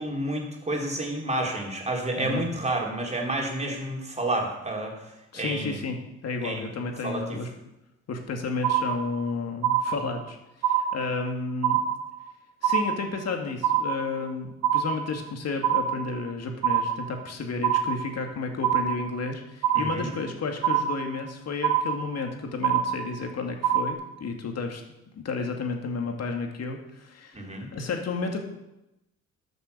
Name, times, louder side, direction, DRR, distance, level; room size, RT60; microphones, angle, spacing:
voice 1, 0.0-5.0 5.3-5.8 6.4-6.7 7.0-7.4 19.7-20.1 27.3-27.7, right 1 dB, 20° right, 0 dB, 3.5 m, -30 dB
voice 2, 2.2-2.5 5.3-7.5 8.1-11.8 12.6-24.8 25.2-27.4 27.7-28.4, left 4 dB, 55° left, 3 dB, 2.3 m, -32 dB
sound 1, 8.6-9.3 9.6-10.3 10.6-11.3 11.6-12.3 12.6-13.3 13.6-14.3 14.6-15.3 15.6-16.3 16.6-17.3 17.6-18.3 18.6-19.3 19.6-20.3 20.6-21.3 21.6-22.3 22.6-23.3 23.6-23.9, right 9 dB, 70° right, 1.4 m, -25 dB
12.5 x 7.1 x 6.7 m, 0.91 s
cardioid pair, 90°, 30 cm